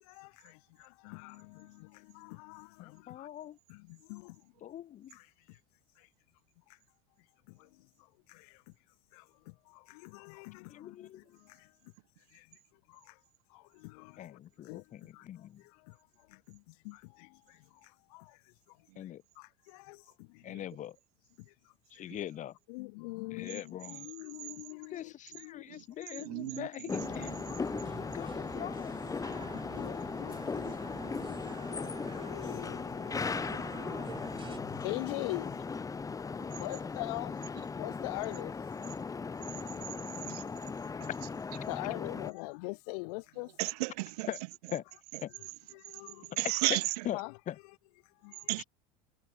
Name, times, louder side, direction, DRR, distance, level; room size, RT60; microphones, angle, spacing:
voice 1, 0.0-3.3 3.7-4.5 5.1-5.6 6.0-6.1 7.5-7.9 8.3-8.6 9.1-11.7 12.3-12.6 12.9-13.2 13.5-16.0 16.3-18.4 18.7-20.5 21.4-21.5 22.0-22.1 22.7-25.6 26.4-26.6 27.5-28.2 29.2-29.3 29.5-34.3 34.5-35.8 36.2-38.6 41.7-43.5 45.4-46.4 47.1-47.4 48.2-48.6, left 29 dB, 70° left, 2.0 m, -44 dB
voice 2, 2.8-3.6 4.6-5.2 10.7-11.2 14.2-15.6 19.0-19.2 20.4-21.0 21.9-22.5 23.3-24.1 24.9-27.3 28.0-29.5 29.8-30.4 44.3-44.4 44.7-44.8 45.2-45.3 46.4-46.8 47.0-47.2 47.5-47.6 48.6-48.7, left 11 dB, 40° left, 5.5 m, -42 dB
voice 3, 26.2-26.7 26.9-27.3 34.5-34.6 40.3-40.4 43.6-44.3 46.4-46.8 48.5-48.6, right 22 dB, 80° right, 1.6 m, -33 dB
sound 1, 26.9-42.3, left 5 dB, 15° left, 3.2 m, -38 dB
sound 2, 27.0-34.6, right 6 dB, 25° right, 6.9 m, -47 dB
supercardioid pair, 125°, 20 cm